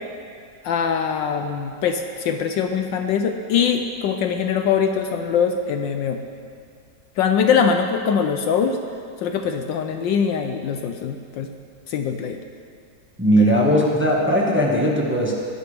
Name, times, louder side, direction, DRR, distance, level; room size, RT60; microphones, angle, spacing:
voice 1, 0.6-6.2 7.2-8.8 9.2-11.5 11.9-12.4 13.4-13.5, left 7 dB, 70° left, 6 dB, 1.3 m, -22 dB
voice 2, 13.2-15.3, equal, 5° right, -3 dB, 1.3 m, -18 dB
20.0 x 11.0 x 3.4 m, 2.4 s
omnidirectional pair, 2.2 m